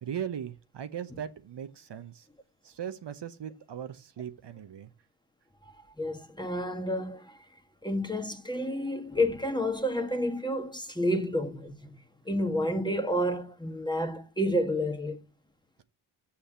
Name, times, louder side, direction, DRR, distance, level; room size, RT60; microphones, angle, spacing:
voice 1, 0.0-2.3 2.6-4.9, right 9 dB, 55° right, 1.0 m, -38 dB
voice 2, 6.0-7.4 7.8-12.0 12.2-15.2, equal, 10° left, 1.5 m, -30 dB
6.4 x 5.9 x 7.3 m
cardioid pair, 60°, 50 cm